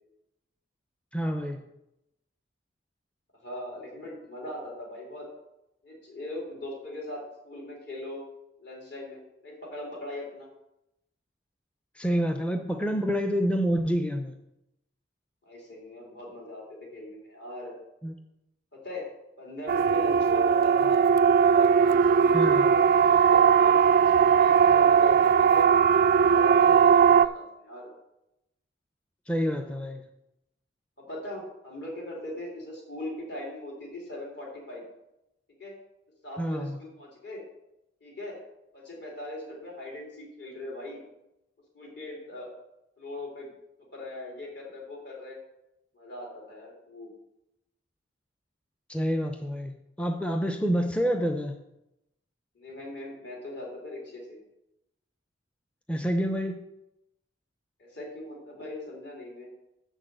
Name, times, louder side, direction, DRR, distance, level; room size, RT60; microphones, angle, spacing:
voice 1, 1.1-1.6 12.0-14.3 18.0-18.1 22.3-22.7 29.3-30.0 36.4-36.8 48.9-51.6 55.9-56.6, equal, 5° left, 5 dB, 0.5 m, -28 dB
voice 2, 3.4-5.3 5.8-8.2 8.6-10.5 15.5-17.7 18.7-19.1 19.4-21.1 21.5-25.7 26.1-27.9 31.0-34.8 35.6-35.7 36.2-37.4 38.0-38.4 38.7-41.0 41.7-42.5 43.0-43.5 43.9-45.4 45.9-47.1 52.5-54.4 57.8-59.5, left 1 dB, 65° left, -3 dB, 3.9 m, -40 dB
Siren, 19.7-27.3, right 7 dB, 50° right, 0.3 m, -19 dB
6.9 x 6.4 x 7.8 m, 0.88 s
head